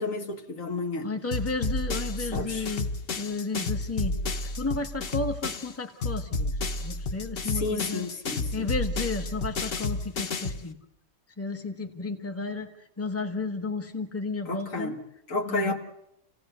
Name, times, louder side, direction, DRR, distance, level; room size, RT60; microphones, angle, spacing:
voice 1, 0.0-1.1 2.2-2.8 7.5-8.7 14.5-15.0 15.3-15.8, left 2 dB, 65° left, 1.9 m, -31 dB
voice 2, 1.0-2.9 3.1-4.2 4.4-8.1 8.5-10.8 11.4-14.9 15.5-15.7, left 3 dB, 10° left, 1.3 m, -33 dB
sound 1, 1.3-5.7 6.0-10.6, left 3 dB, 45° left, 1.1 m, -31 dB
28.0 x 16.5 x 8.0 m
omnidirectional pair, 1.5 m